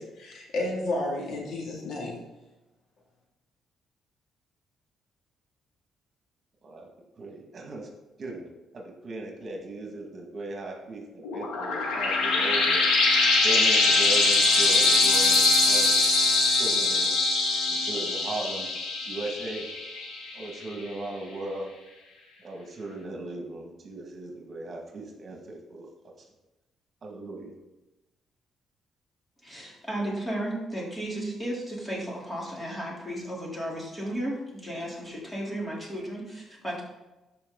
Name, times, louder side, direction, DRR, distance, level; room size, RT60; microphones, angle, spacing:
voice 1, 0.0-2.1, left 2 dB, 70° left, -2 dB, 2.8 m, -31 dB
voice 2, 7.2-7.9 8.2-16.0 16.5-17.2 17.7-18.7 19.1-19.7 20.3-21.7 22.4-25.9 27.0-27.5, right 2 dB, 45° right, 0 dB, 2.2 m, -37 dB
sound 1, 11.2-20.4, left 3 dB, 90° left, 2.3 m, -23 dB
voice 3, 29.4-36.8, right 1 dB, 15° left, -4 dB, 3.7 m, -34 dB
13.5 x 5.4 x 4.0 m, 1.0 s
cardioid pair, 90°, 0 cm